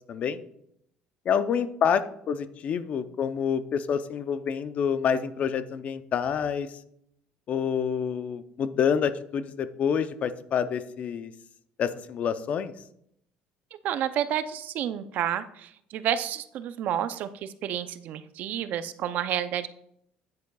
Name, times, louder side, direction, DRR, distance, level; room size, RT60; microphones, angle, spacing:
voice 1, 0.1-0.4 1.3-6.7 7.5-11.3 11.8-12.7, left 7 dB, 50° left, 12 dB, 0.6 m, -27 dB
voice 2, 13.8-19.7, right 10 dB, 65° right, 12 dB, 0.5 m, -30 dB
9.5 x 8.6 x 2.3 m, 0.74 s
cardioid pair, 110°, 3 cm